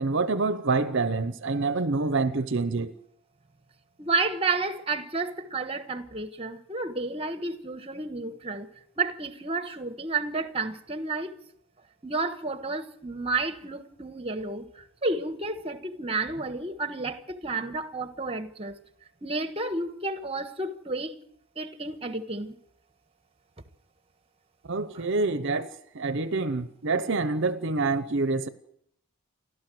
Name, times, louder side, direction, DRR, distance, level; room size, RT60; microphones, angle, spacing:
voice 1, 0.0-2.9 24.7-28.5, right 3 dB, 60° right, 0.9 m, -27 dB
voice 2, 4.0-8.7 9.0-11.4 12.0-18.8 19.2-21.1 21.6-22.5 24.9-25.0, right 3 dB, 25° right, 1.3 m, -31 dB
29.5 x 12.5 x 7.8 m
head